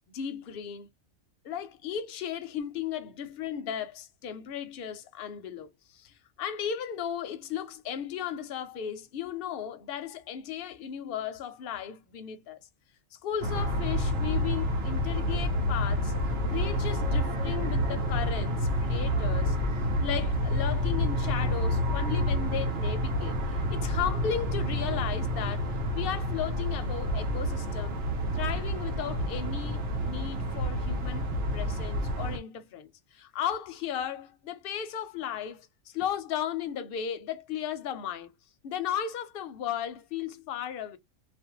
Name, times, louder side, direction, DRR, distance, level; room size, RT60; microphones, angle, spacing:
voice 1, 0.1-0.9 1.4-12.6 13.2-16.1 16.5-19.6 20.0-28.0 28.3-38.3 38.6-41.0, left 9 dB, 60° left, 0.7 m, -35 dB
sound 1, 13.4-32.4, equal, 70° right, 1.0 m, -29 dB
2.5 x 2.1 x 2.9 m
omnidirectional pair, 1.3 m